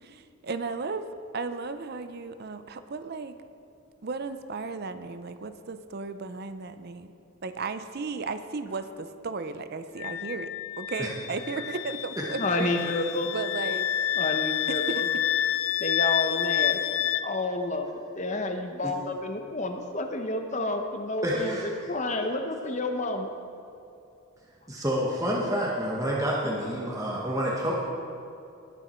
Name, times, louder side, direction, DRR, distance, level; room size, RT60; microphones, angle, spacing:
voice 1, 0.0-1.1 1.3-3.4 4.0-7.1 7.4-12.7 13.3-13.8 14.7-15.1, right 4 dB, 45° right, 10 dB, 0.5 m, -35 dB
Wind instrument woodwind instrument, 10.0-17.3, left 11 dB, 70° left, 0.4 m, -29 dB
voice 2, 12.4-13.3 14.2-15.1 15.8-16.8 17.2-17.9 18.2-21.5 21.9-23.3, left 2 dB, 35° left, 5 dB, 0.9 m, -30 dB
voice 3, 21.2-21.7 24.7-27.7, equal, 15° right, -4 dB, 1.1 m, -28 dB
19.5 x 7.0 x 4.4 m, 2.7 s
head